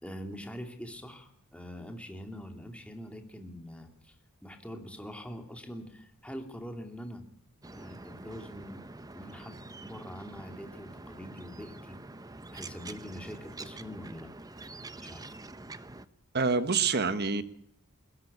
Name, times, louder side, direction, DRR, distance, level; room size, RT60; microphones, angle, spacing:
voice 1, 0.0-4.1 4.4-7.2 7.7-8.8 9.1-12.0 12.5-14.3 15.0-15.3, equal, 5° left, 4 dB, 2.7 m, -44 dB
sound 1, 7.6-16.1, right 2 dB, 15° right, 0.8 m, -46 dB
voice 2, 16.3-17.4, right 4 dB, 50° right, 12 dB, 1.3 m, -26 dB
21.5 x 16.5 x 8.6 m, 0.69 s
head